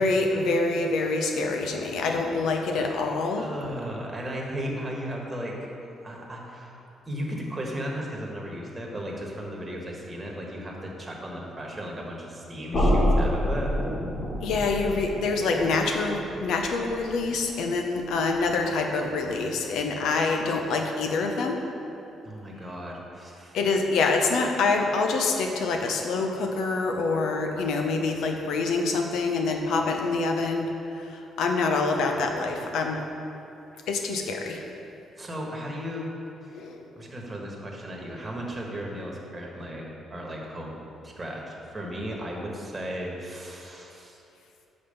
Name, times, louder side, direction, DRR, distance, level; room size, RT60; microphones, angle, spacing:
voice 1, 0.0-3.5 14.4-21.6 23.5-33.0 33.9-34.6 36.5-36.8, left 3 dB, 80° left, 3 dB, 0.7 m, -26 dB
voice 2, 3.4-5.5 6.0-13.7 22.2-23.6 35.2-36.1 36.4-36.6 37.0-44.2, equal, 20° right, -2 dB, 1.3 m, -36 dB
sound 1, 12.7-18.6, equal, 50° left, 1.6 m, -28 dB
6.0 x 5.3 x 5.3 m, 2.8 s
cardioid pair, 90°, 0 cm